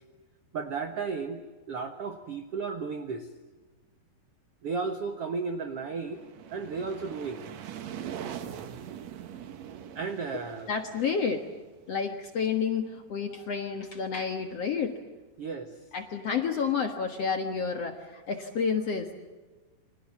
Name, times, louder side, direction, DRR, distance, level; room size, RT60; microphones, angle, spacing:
voice 1, 0.5-3.3 4.6-6.2 6.5-7.4 9.9-10.7 15.4-15.8, right 4 dB, 90° right, 7 dB, 1.3 m, -34 dB
sound 1, 5.7-12.4, right 9 dB, 65° right, 1.7 m, -42 dB
voice 2, 10.7-11.4 11.9-14.9 15.9-19.1, left 6 dB, 55° left, 6 dB, 1.8 m, -30 dB
29.0 x 24.0 x 7.3 m, 1.3 s
omnidirectional pair, 4.9 m